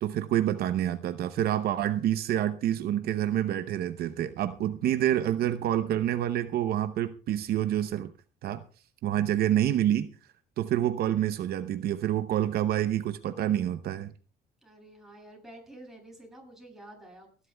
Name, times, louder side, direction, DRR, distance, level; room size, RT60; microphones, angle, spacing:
voice 1, 0.0-8.1 8.4-8.6 9.0-10.1 10.6-14.1, right 11 dB, 65° right, 11 dB, 0.8 m, -27 dB
voice 2, 14.6-17.5, right 1 dB, ahead, -1 dB, 7.6 m, -50 dB
30.0 x 11.5 x 2.3 m, 0.37 s
cardioid pair, 110°, 17 cm